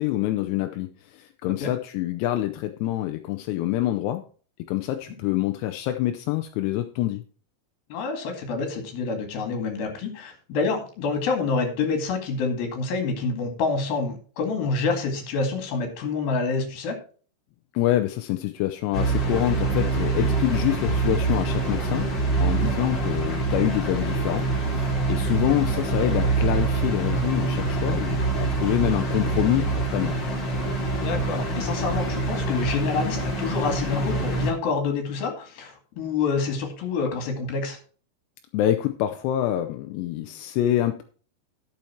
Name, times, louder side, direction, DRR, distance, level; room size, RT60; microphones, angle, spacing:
voice 1, 0.0-4.2 4.7-7.2 17.7-22.1 22.4-24.5 24.7-30.2 38.5-41.0, left 14 dB, 80° left, 7 dB, 2.5 m, -26 dB
voice 2, 7.9-17.0 20.2-20.3 22.6-22.9 31.0-37.8, left 4 dB, 60° left, 4 dB, 3.7 m, -27 dB
sound 1, 18.9-34.5, right 3 dB, 35° left, 2.0 m, -25 dB
12.0 x 7.1 x 4.5 m, 0.41 s
omnidirectional pair, 5.3 m